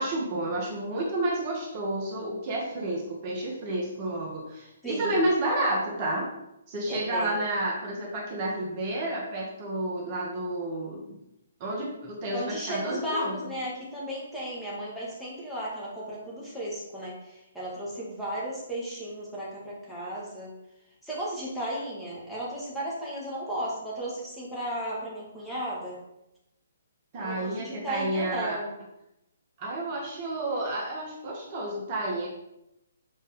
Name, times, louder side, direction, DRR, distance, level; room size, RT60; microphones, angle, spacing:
voice 1, 0.0-6.3 6.7-11.2 11.6-13.5 27.1-28.6 29.6-32.3, right 1 dB, 30° right, -4 dB, 1.9 m, -30 dB
voice 2, 4.8-5.3 6.9-7.4 12.3-20.5 21.0-26.0 27.1-28.7, right 1 dB, 5° left, -8 dB, 2.1 m, -34 dB
7.4 x 4.3 x 3.6 m, 0.86 s
hypercardioid pair, 145°, 0 cm